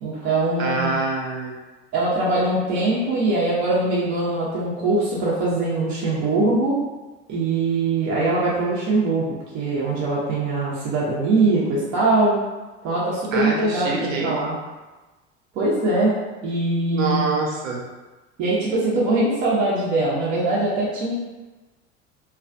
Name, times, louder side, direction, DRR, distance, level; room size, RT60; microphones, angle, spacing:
voice 1, 0.0-0.9 1.9-6.8 7.3-12.4 12.8-14.5 15.5-16.1 16.4-17.2 18.4-21.1, right 2 dB, 50° right, -7 dB, 0.7 m, -22 dB
voice 2, 0.6-1.6 13.3-14.4 16.9-17.8, right 3 dB, 85° right, -1 dB, 0.6 m, -25 dB
2.3 x 2.2 x 2.5 m, 1.2 s
hypercardioid pair, 70°, 38 cm